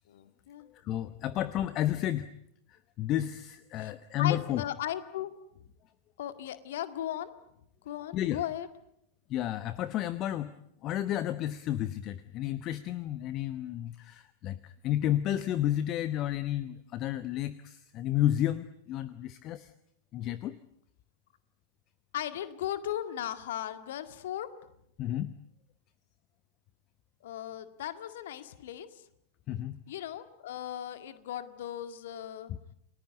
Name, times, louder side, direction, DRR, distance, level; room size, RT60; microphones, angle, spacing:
voice 1, 0.1-0.7 1.0-1.1 3.8-3.9 4.2-5.3 6.2-7.3 7.8-8.7 22.1-24.5 27.2-29.0 29.9-32.5, left 11 dB, 55° left, 10 dB, 1.9 m, -37 dB
voice 2, 0.7-2.3 2.7-4.6 8.1-8.4 9.3-10.5 10.8-19.7 20.1-20.6 25.0-25.3 29.5-29.8 32.5-32.6, left 12 dB, 35° left, 14 dB, 1.1 m, -31 dB
29.5 x 20.0 x 9.3 m, 0.78 s
figure-of-eight pair, 90°, 0 cm